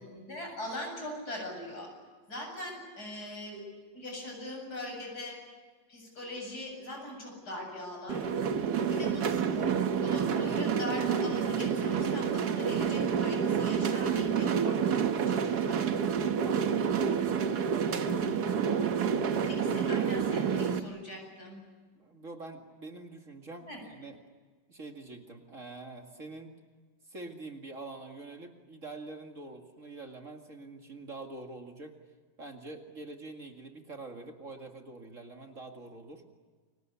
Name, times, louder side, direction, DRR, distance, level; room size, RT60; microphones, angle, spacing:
voice 1, 0.0-1.9 2.3-3.6 3.9-5.4 5.9-8.2 8.9-15.8 19.4-21.6 23.6-23.8, left 1 dB, 60° left, 2 dB, 8.6 m, -41 dB
sound 1, 8.1-20.8, right 7 dB, 60° right, 1.7 m, -28 dB
voice 2, 16.4-16.9 17.7-18.2 21.9-24.2 24.7-26.5 27.1-31.9 32.4-36.2, right 3 dB, 45° right, 3 dB, 2.5 m, -45 dB
30.0 x 24.5 x 7.1 m, 1.4 s
omnidirectional pair, 2.0 m